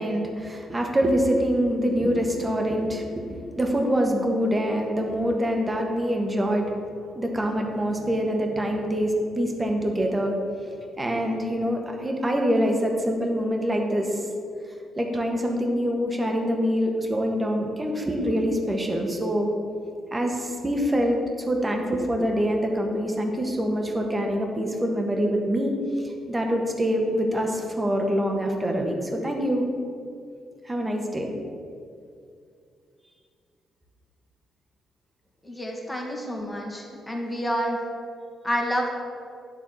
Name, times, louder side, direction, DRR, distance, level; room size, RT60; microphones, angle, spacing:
voice 1, 0.0-3.2 3.5-6.6 7.1-10.4 11.0-14.3 15.0-19.5 20.1-25.8 26.3-29.6 30.6-31.3, equal, 25° right, 1 dB, 1.4 m, -25 dB
voice 2, 35.4-37.8 38.4-39.0, equal, 15° left, -1 dB, 1.8 m, -28 dB
9.6 x 3.5 x 6.2 m, 2.4 s
hypercardioid pair, 50°, 0 cm